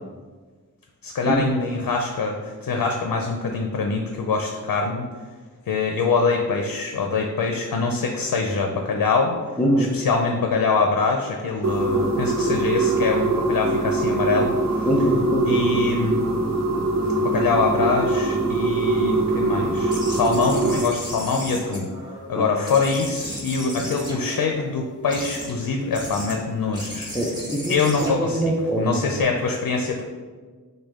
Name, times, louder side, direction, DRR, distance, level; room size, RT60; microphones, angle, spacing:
voice 1, 1.0-5.0 5.7-9.4 9.8-14.5 15.4-16.2 17.2-21.9 22.3-27.1 27.7-28.4 28.8-30.0, left 4 dB, 85° left, 3 dB, 0.5 m, -24 dB
voice 2, 9.6-9.9 14.8-15.6 22.3-22.5 27.1-29.0, right 1 dB, 5° left, -2 dB, 0.6 m, -23 dB
sound 1, 11.6-20.8, right 2 dB, 55° right, 0.7 m, -22 dB
sound 2, 19.9-22.3 22.7-24.6 25.1-25.5 25.9-26.3 26.7-29.2, equal, 10° right, 1.3 m, -35 dB
6.3 x 2.3 x 3.6 m, 1.5 s
wide cardioid pair, 80°, 33 cm